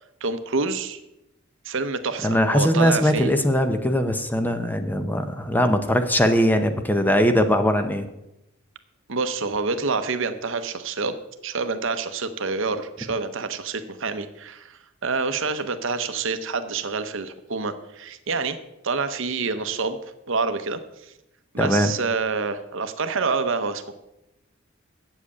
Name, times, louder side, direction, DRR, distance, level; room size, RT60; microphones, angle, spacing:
voice 1, 0.2-1.0 1.6-3.3 9.1-11.2 11.4-18.6 18.8-20.0 20.3-21.1 21.5-23.9, right 4 dB, 60° right, 10 dB, 0.8 m, -27 dB
voice 2, 2.2-8.1 21.6-21.9, equal, 10° left, 8 dB, 0.7 m, -21 dB
8.1 x 7.6 x 8.4 m, 0.91 s
head